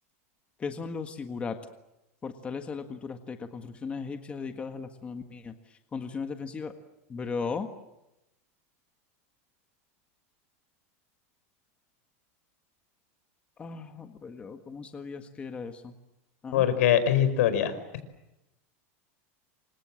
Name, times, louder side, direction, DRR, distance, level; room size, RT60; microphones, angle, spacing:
voice 1, 0.6-1.6 2.2-5.5 5.9-6.7 7.1-7.7 13.6-15.9 16.4-16.7, left 5 dB, 15° left, 7 dB, 1.6 m, -36 dB
voice 2, 16.5-17.7, left 10 dB, 75° left, 12 dB, 5.2 m, -22 dB
28.5 x 26.0 x 7.6 m, 0.92 s
supercardioid pair, 160°, 8 cm